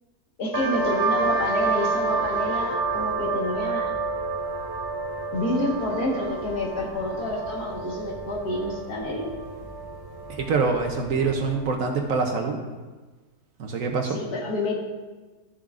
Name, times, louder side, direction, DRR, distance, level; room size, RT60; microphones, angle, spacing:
voice 1, 0.4-3.9 5.3-9.2 14.1-14.7, left 2 dB, 70° left, -3 dB, 2.0 m, -28 dB
sound 1, 0.5-11.8, right 3 dB, 35° right, 0.3 m, -29 dB
voice 2, 10.3-12.6 13.6-14.2, right 4 dB, 60° right, 3 dB, 1.1 m, -25 dB
12.5 x 6.9 x 2.5 m, 1.3 s
omnidirectional pair, 1.8 m